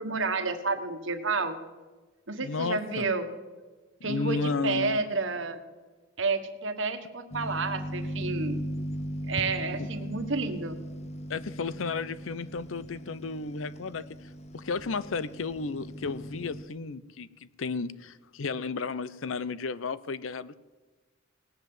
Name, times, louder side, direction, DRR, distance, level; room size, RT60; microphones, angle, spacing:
voice 1, 0.0-1.6 2.3-3.3 4.0-5.6 6.2-8.6 9.3-10.8, right 3 dB, 65° right, 8 dB, 1.4 m, -30 dB
voice 2, 2.4-3.0 4.0-5.0 11.3-14.1 14.5-20.5, left 4 dB, 75° left, 17 dB, 0.6 m, -33 dB
sound 1, 7.3-16.6, equal, 30° left, 0.8 m, -38 dB
19.0 x 7.9 x 7.8 m, 1.3 s
head